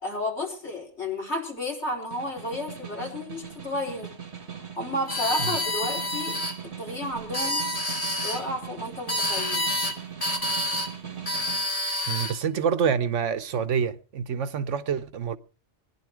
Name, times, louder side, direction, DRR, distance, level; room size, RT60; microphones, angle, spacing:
voice 1, 0.0-4.1 4.8-6.4 6.8-7.6 8.2-9.6, left 1 dB, 70° left, 4.7 m, -32 dB
Snare drum, 1.9-11.7, right 8 dB, 65° right, 2.4 m, -40 dB
sound 1, 5.1-6.6 7.2-8.4 9.1-10.0 10.2-10.9 11.3-12.4, left 1 dB, 30° left, 1.9 m, -28 dB
voice 2, 12.1-15.4, right 7 dB, 85° right, 1.2 m, -27 dB
20.5 x 11.0 x 4.7 m
omnidirectional pair, 1.2 m